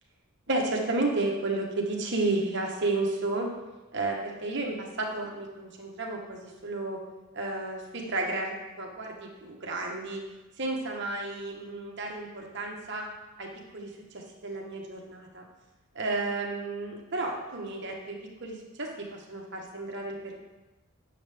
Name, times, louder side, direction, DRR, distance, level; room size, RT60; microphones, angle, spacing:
voice 1, 0.5-3.5 3.9-7.0 7.3-10.2 10.6-13.1 13.4-15.4 15.9-20.3, right 2 dB, 55° right, 0 dB, 1.2 m, -32 dB
9.2 x 6.6 x 3.5 m, 1.1 s
head